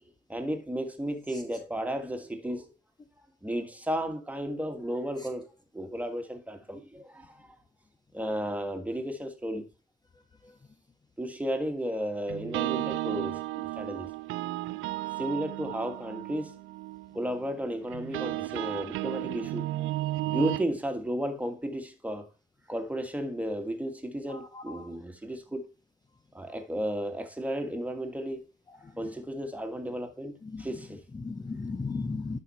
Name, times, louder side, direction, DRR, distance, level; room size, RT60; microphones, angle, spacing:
voice 1, 0.3-2.7 3.4-7.5 8.1-9.7 11.2-14.1 15.2-16.6 17.1-19.7 20.2-22.3 22.7-25.7 26.3-28.5 29.0-31.0, equal, 5° right, 1.6 m, -33 dB
sound 1, 12.3-20.6, right 17 dB, 85° right, 0.4 m, -34 dB
voice 2, 24.3-24.9 30.4-30.6 31.1-32.4, left 4 dB, 20° left, 0.7 m, -35 dB
11.5 x 4.2 x 4.2 m
cardioid pair, 90°, 20 cm